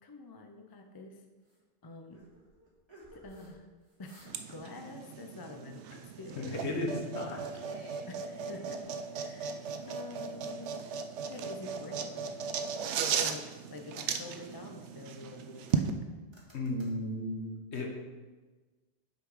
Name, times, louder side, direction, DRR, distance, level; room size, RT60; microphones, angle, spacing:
voice 1, 0.0-1.2 1.8-2.2 3.1-3.7 4.0-6.5 8.1-8.8 9.1-10.9 11.2-12.4 13.2-13.4 13.7-15.9, left 3 dB, 30° left, 4 dB, 0.5 m, -47 dB
sound 1, 1.5-1.6 2.1-3.6 3.9-4.6 4.8-5.1 5.7-6.5 6.9-7.1 7.4-9.3 9.8-10.8 11.2-12.4 12.8-13.6 14.1-15.2 15.7-16.0 16.3-16.9, right 1 dB, 20° right, 1.6 m, -56 dB
sound 2, 4.3-15.9, right 6 dB, 70° right, 0.9 m, -37 dB
voice 2, 6.4-7.4 16.5-17.9, left 1 dB, 65° left, 1 dB, 1.4 m, -34 dB
6.4 x 5.6 x 4.8 m, 1.3 s
omnidirectional pair, 1.3 m